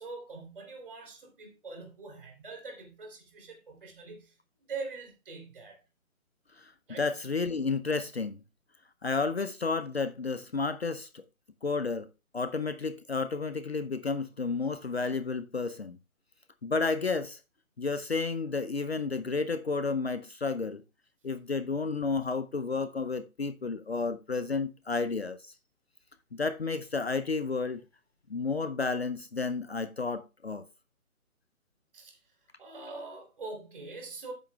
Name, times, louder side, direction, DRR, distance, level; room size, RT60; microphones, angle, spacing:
voice 1, 0.0-4.3 4.7-5.8 6.9-7.1 31.9-32.2 32.6-34.3, right 3 dB, 35° right, 3.2 m, -43 dB
voice 2, 7.0-8.4 9.0-11.2 11.6-12.1 12.3-16.0 16.6-17.4 17.8-20.8 21.2-25.5 26.3-27.8 28.3-30.6, left 4 dB, 45° left, 0.7 m, -31 dB
12.5 x 9.1 x 2.3 m
figure-of-eight pair, 150°, 43 cm